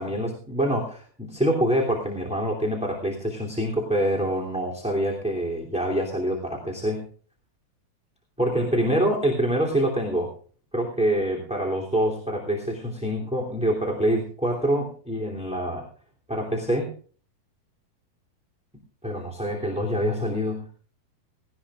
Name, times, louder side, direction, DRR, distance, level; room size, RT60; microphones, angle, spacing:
voice 1, 0.0-7.0 8.4-10.3 10.7-15.9 16.3-16.9 19.0-20.6, right 1 dB, ahead, 0 dB, 2.2 m, -25 dB
18.5 x 18.0 x 2.5 m, 0.42 s
omnidirectional pair, 4.3 m